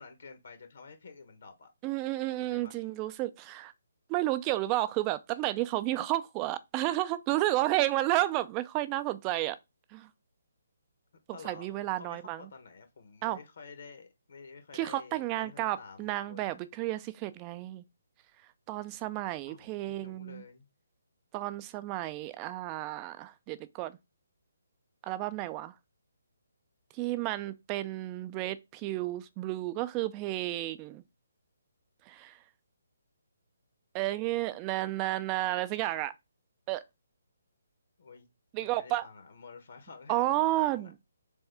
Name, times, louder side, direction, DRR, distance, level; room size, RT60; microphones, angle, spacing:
voice 1, 0.0-1.7 2.5-2.9 11.3-16.6 19.5-20.7 38.0-38.3 38.5-40.9, left 4 dB, 65° left, 0.9 m, -50 dB
voice 2, 1.8-3.7 4.1-9.6 9.9-10.1 11.4-12.5 13.2-13.4 14.7-17.8 18.7-20.4 21.3-23.9 25.0-25.7 27.0-31.0 32.1-32.3 33.9-36.1 36.7-36.8 38.5-39.1 40.1-40.9, right 16 dB, 25° right, 0.4 m, -31 dB
3.5 x 3.4 x 3.3 m
figure-of-eight pair, 145°, 0 cm